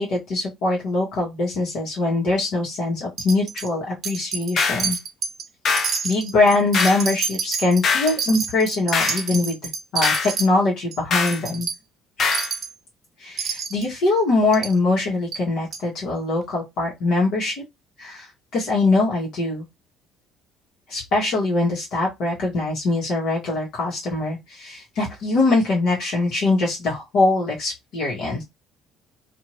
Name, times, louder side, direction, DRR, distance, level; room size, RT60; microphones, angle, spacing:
voice 1, 0.0-5.0 6.0-9.6 9.9-11.7 12.2-12.3 13.2-17.6 18.0-18.3 18.5-19.6 20.9-28.4, left 2 dB, 70° left, 1.3 m, -22 dB
Wind chime, 3.2-3.7 4.0-4.5 4.8-5.4 5.8-10.5 10.9-11.0 11.3-11.8 12.3-12.7 13.4-13.8 14.5-14.7 15.3-15.4 15.7-15.8, right 6 dB, 45° right, 0.6 m, -28 dB
sound 1, 4.6-4.9 5.6-6.0 6.7-7.1 7.8-8.2 8.9-9.2 10.0-10.3 11.1-11.4 12.2-12.5, left 5 dB, 45° left, 0.6 m, -22 dB
2.7 x 2.5 x 3.1 m
cardioid pair, 135°, 0 cm